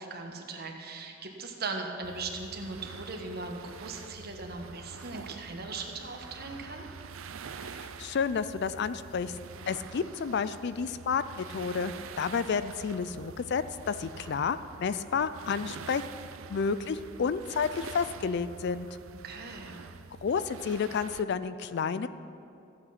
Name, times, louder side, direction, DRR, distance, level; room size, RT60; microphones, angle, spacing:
voice 1, 0.0-6.9 19.2-19.8, right 3 dB, 50° right, 2 dB, 1.4 m, -39 dB
sound 1, 2.0-21.2, right 5 dB, 70° right, 0.5 m, -46 dB
voice 2, 7.6-9.4 9.7-16.0 16.5-18.9 20.2-22.1, left 5 dB, 55° left, 14 dB, 0.4 m, -31 dB
15.0 x 8.6 x 5.9 m, 2.6 s
head